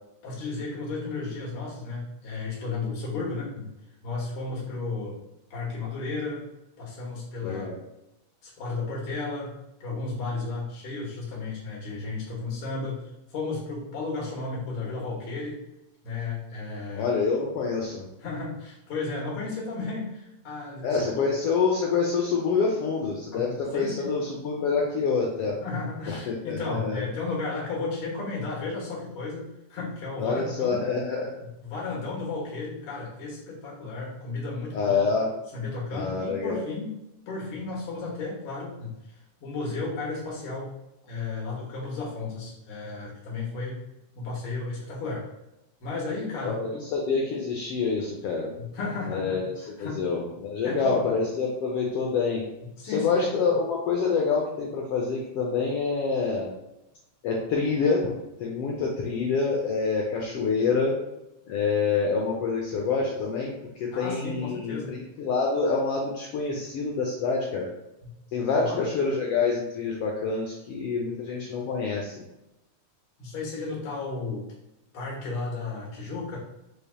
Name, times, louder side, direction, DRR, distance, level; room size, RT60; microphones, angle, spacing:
voice 1, 0.2-3.7 4.0-5.2 5.5-6.5 6.8-7.7 8.4-9.5 9.8-15.6 16.0-17.1 18.2-21.3 23.3-23.5 23.7-24.2 25.6-30.8 31.6-35.0 35.5-36.9 37.3-39.1 39.4-40.7 41.0-43.8 44.2-45.3 45.8-46.8 48.6-50.0 50.6-51.0 52.8-53.5 63.9-65.0 68.0-68.1 68.5-68.8 73.2-74.4 74.9-76.4, left 3 dB, 50° left, -4 dB, 1.9 m, -33 dB
voice 2, 7.4-7.8 16.9-18.0 20.8-25.6 26.1-27.1 30.2-31.4 34.7-35.3 35.9-36.6 46.4-48.5 49.1-49.5 49.8-52.4 52.8-56.5 57.2-60.9 61.5-67.7 68.3-72.1, left 4 dB, 80° left, -1 dB, 1.3 m, -27 dB
5.8 x 3.3 x 2.3 m, 0.89 s
omnidirectional pair, 3.3 m